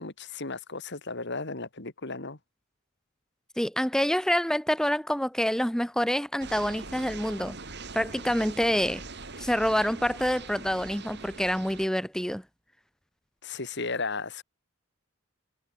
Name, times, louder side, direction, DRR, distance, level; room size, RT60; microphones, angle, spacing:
voice 1, 0.0-2.4 13.4-14.4, left 3 dB, 60° left, 2.7 m, -35 dB
voice 2, 3.6-7.6 7.9-9.0 9.4-12.4, equal, 5° left, 2.4 m, -27 dB
sound 1, 6.4-11.9, right 3 dB, 55° right, 7.2 m, -42 dB
head